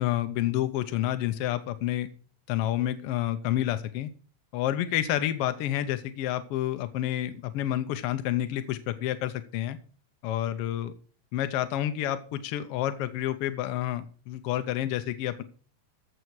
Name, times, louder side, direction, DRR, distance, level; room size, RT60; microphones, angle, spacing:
voice 1, 0.0-2.1 2.5-4.1 4.5-9.8 10.2-10.9 11.3-15.4, left 12 dB, 75° left, 11 dB, 1.4 m, -29 dB
14.5 x 7.0 x 4.6 m, 0.42 s
omnidirectional pair, 3.3 m